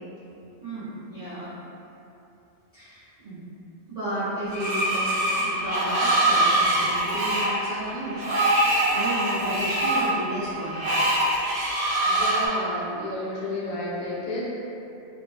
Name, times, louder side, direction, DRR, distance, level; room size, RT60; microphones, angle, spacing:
voice 1, 0.6-1.5 2.7-3.4 3.9-8.3 8.9-11.0, right 1 dB, 40° right, -14 dB, 0.7 m, -33 dB
Screech, 4.5-12.5, right 1 dB, 70° right, 0.8 m, -24 dB
voice 2, 9.1-9.5 12.1-14.5, left 1 dB, 55° left, -6 dB, 0.4 m, -32 dB
2.5 x 2.1 x 2.4 m, 2.8 s
omnidirectional pair, 1.1 m